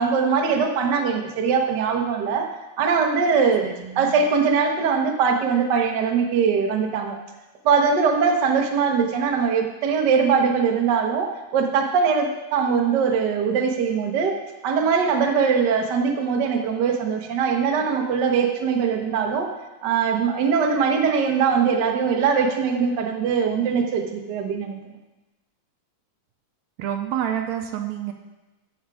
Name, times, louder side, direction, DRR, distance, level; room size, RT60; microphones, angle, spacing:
voice 1, 0.0-2.5 2.8-3.7 4.0-7.2 7.6-14.3 14.6-19.5 19.8-24.8, right 6 dB, 60° right, 2 dB, 1.1 m, -21 dB
voice 2, 3.6-4.1 26.8-28.1, right 10 dB, 75° right, 5 dB, 1.9 m, -28 dB
14.5 x 6.0 x 4.8 m, 1.1 s
omnidirectional pair, 3.5 m